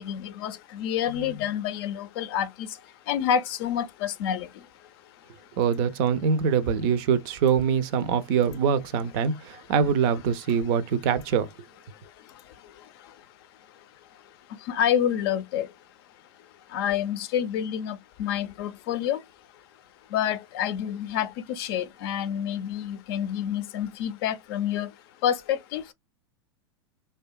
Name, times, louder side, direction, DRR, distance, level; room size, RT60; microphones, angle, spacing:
voice 1, 0.0-2.7 3.1-4.5 14.7-15.7 16.7-19.2 20.1-24.9 25.2-25.9, left 9 dB, 55° left, 0.5 m, -28 dB
voice 2, 5.6-11.5, right 7 dB, 50° right, 0.5 m, -24 dB
2.7 x 2.2 x 2.3 m
hypercardioid pair, 95°, 15 cm